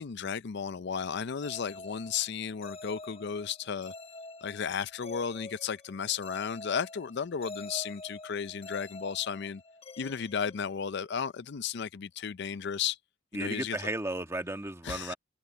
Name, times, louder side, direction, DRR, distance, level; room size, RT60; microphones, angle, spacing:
voice 1, 0.0-3.9 4.4-9.6 10.0-13.0 13.3-13.8 14.8-15.1, left 7 dB, 55° left, 0.5 m, -34 dB
sound 1, 1.4-11.2, left 2 dB, 30° left, 1.4 m, -47 dB
voice 2, 13.3-15.1, right 1 dB, 15° right, 1.6 m, -34 dB
head